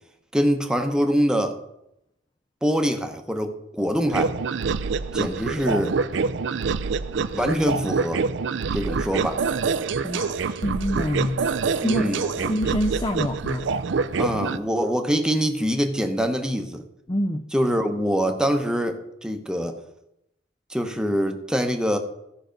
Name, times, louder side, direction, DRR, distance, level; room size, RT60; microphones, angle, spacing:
voice 1, 0.3-1.6 2.6-4.3 5.1-5.9 7.3-8.2 8.7-9.4 11.8-12.5 14.2-16.8 17.5-19.8 20.7-22.0, equal, 5° right, 4 dB, 0.9 m, -24 dB
sound 1, 4.1-14.6, right 5 dB, 75° right, 0.5 m, -26 dB
voice 2, 10.0-11.4 11.7-13.7 14.3-14.4 17.1-17.4, left 1 dB, 25° left, 6 dB, 0.5 m, -27 dB
14.5 x 5.7 x 5.2 m, 0.84 s
head